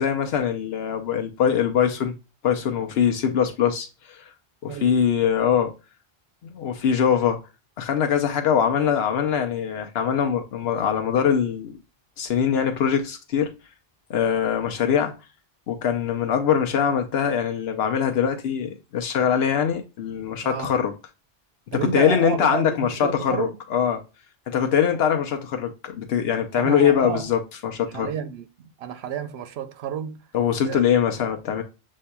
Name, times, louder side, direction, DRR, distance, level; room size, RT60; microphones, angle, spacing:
voice 1, 0.0-2.1 2.4-4.3 4.6-5.7 6.6-7.4 7.8-11.8 12.2-13.5 14.1-15.1 15.7-20.9 21.7-24.0 24.5-28.1 30.3-31.6, left 8 dB, 85° left, 0.9 m, -22 dB
voice 2, 4.7-5.0 20.4-20.7 21.7-23.6 26.5-27.3 27.9-30.2 30.6-30.8, right 8 dB, 85° right, 0.9 m, -31 dB
7.2 x 2.7 x 2.2 m
omnidirectional pair, 1.0 m